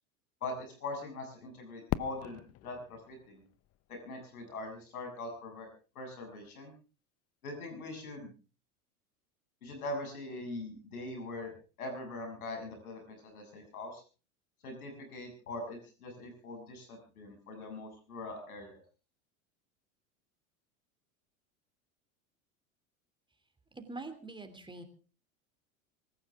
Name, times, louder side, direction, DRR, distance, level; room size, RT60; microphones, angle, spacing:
voice 1, 0.4-3.4 3.9-5.7 6.0-6.7 7.4-8.3 9.6-14.0 14.6-18.8, left 2 dB, 85° left, 4 dB, 7.2 m, -42 dB
Fireworks, 1.9-4.8, left 14 dB, 35° left, 0.7 m, -40 dB
voice 2, 23.7-24.8, right 3 dB, 10° right, 7 dB, 2.9 m, -44 dB
25.0 x 14.5 x 3.6 m, 0.36 s
hypercardioid pair, 90°, 43 cm